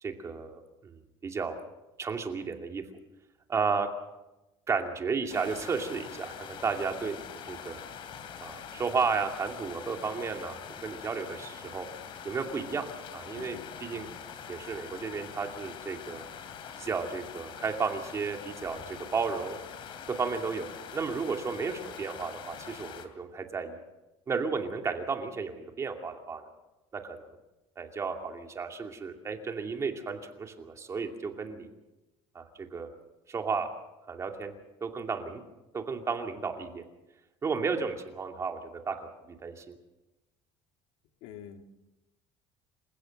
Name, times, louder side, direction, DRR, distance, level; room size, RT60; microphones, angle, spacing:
voice 1, 0.0-1.6 2.0-2.8 3.5-3.9 4.7-7.2 7.4-7.8 8.4-11.9 12.2-14.1 14.5-16.2 16.8-19.6 20.1-20.7 20.9-23.8 24.3-26.5 26.9-27.3 27.8-31.7 32.3-32.4 32.7-32.9 33.3-33.7 34.1-34.5 34.8-35.4 35.7-36.8 37.4-39.1 39.4-39.7, right 5 dB, 25° right, 4 dB, 2.5 m, -33 dB
sound 1, 5.3-23.1, left 7 dB, 50° left, 2.8 m, -44 dB
voice 2, 13.3-13.7 13.9-14.1 41.2-41.6, left 10 dB, 85° left, 6 dB, 1.9 m, -45 dB
28.0 x 15.0 x 6.5 m, 1.0 s
cardioid pair, 145°, 11 cm